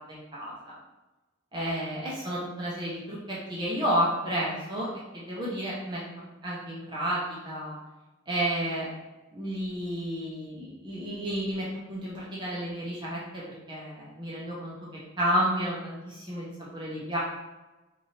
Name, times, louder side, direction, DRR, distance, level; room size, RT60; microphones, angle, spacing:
voice 1, 0.1-0.7 1.5-4.9 5.1-6.0 6.4-7.8 8.3-8.9 9.3-14.7 15.2-16.5 16.7-17.2, equal, 25° right, -7 dB, 0.7 m, -31 dB
3.4 x 2.6 x 4.1 m, 1.1 s
head